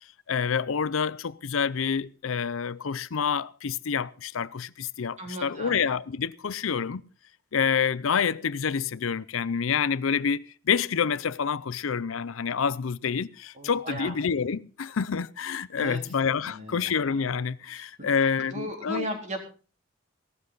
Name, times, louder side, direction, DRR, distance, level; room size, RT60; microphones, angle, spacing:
voice 1, 0.3-7.0 7.5-19.1, left 6 dB, 90° left, 0.6 m, -28 dB
voice 2, 5.2-5.8 13.6-14.2 15.8-16.0 16.5-16.9 17.8-17.9 18.5-19.4, equal, 35° right, 3.9 m, -36 dB
17.0 x 13.0 x 4.0 m
head